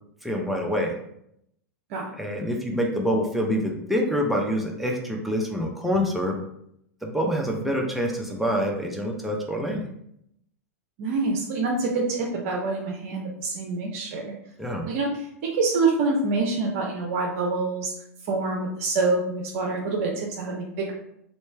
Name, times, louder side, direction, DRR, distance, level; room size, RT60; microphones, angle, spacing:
voice 1, 0.2-0.9 2.2-6.4 7.0-9.8 14.6-14.9, equal, ahead, -1 dB, 0.7 m, -26 dB
voice 2, 11.0-14.3 14.9-17.9 18.2-20.9, right 3 dB, 55° right, -1 dB, 0.7 m, -26 dB
3.1 x 2.7 x 3.3 m, 0.75 s
hypercardioid pair, 105°, 9 cm